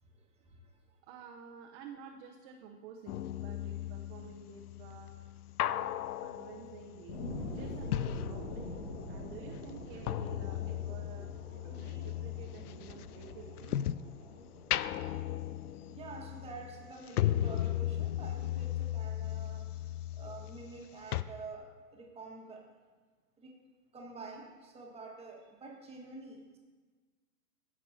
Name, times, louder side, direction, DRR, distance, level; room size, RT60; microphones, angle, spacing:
voice 1, 0.0-1.0 15.9-22.6 23.4-23.5 23.9-26.6, right 3 dB, 10° right, 0 dB, 1.6 m, -48 dB
voice 2, 1.0-5.1 5.6-8.8 9.1-11.3 11.6-13.8, right 7 dB, 35° right, 0 dB, 0.9 m, -51 dB
sound 1, 3.1-9.0 9.3-14.2 14.6-20.8 21.1-21.2, left 12 dB, 70° left, 0.5 m, -36 dB
sound 2, 7.1-18.1 18.6-18.7, left 2 dB, 50° left, 1.9 m, -45 dB
15.0 x 7.5 x 2.8 m, 1.4 s
hypercardioid pair, 120°, 48 cm